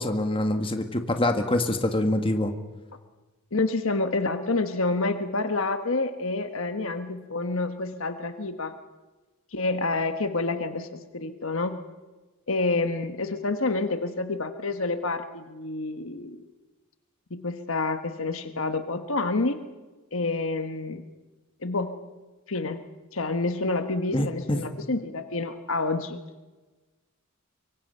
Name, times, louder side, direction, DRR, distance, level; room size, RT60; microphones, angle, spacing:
voice 1, 0.0-2.5 24.1-24.6, left 1 dB, 25° left, 6 dB, 1.7 m, -25 dB
voice 2, 3.5-8.7 9.5-11.8 12.5-16.4 17.3-19.6 20.1-21.0 21.6-22.0 22.5-22.8 23.1-26.2, left 3 dB, 65° left, 8 dB, 1.3 m, -28 dB
24.5 x 24.0 x 5.5 m, 1.2 s
head